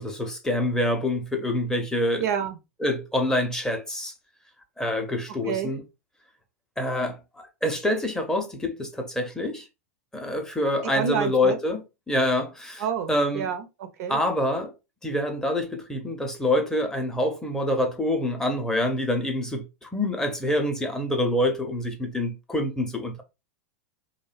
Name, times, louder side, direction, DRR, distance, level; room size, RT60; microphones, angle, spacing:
voice 1, 0.0-2.3 2.8-4.1 4.8-5.8 6.8-9.7 10.1-12.8 13.1-13.5 14.1-14.7 15.0-23.2, left 1 dB, 5° left, 0.6 m, -26 dB
voice 2, 2.2-2.6 5.4-5.7 10.8-11.6 12.8-14.2, right 8 dB, 65° right, 0.6 m, -28 dB
2.6 x 2.1 x 2.3 m
hypercardioid pair, 105°, 9 cm